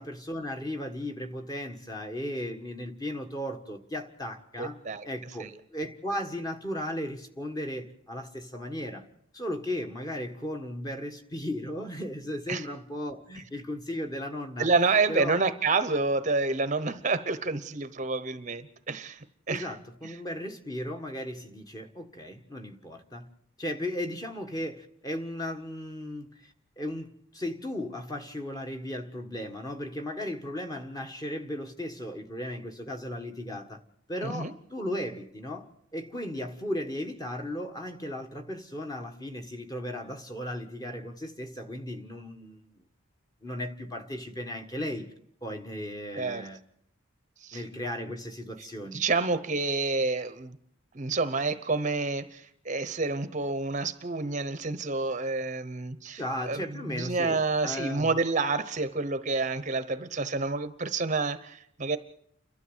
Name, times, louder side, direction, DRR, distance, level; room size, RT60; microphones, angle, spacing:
voice 1, 0.0-4.8 5.0-9.1 9.3-14.7 15.1-15.4 19.5-23.3 23.6-33.8 34.1-42.6 43.4-45.1 45.4-46.6 47.5-49.0 56.2-58.1, left 1 dB, 20° left, 1.6 m, -36 dB
voice 2, 4.6-5.1 5.4-5.5 12.5-12.7 14.6-19.7 20.0-20.1 34.2-34.5 46.1-46.4 47.4-47.6 48.9-50.6 50.9-62.0, right 3 dB, 35° right, 0.9 m, -29 dB
30.0 x 12.5 x 8.1 m
head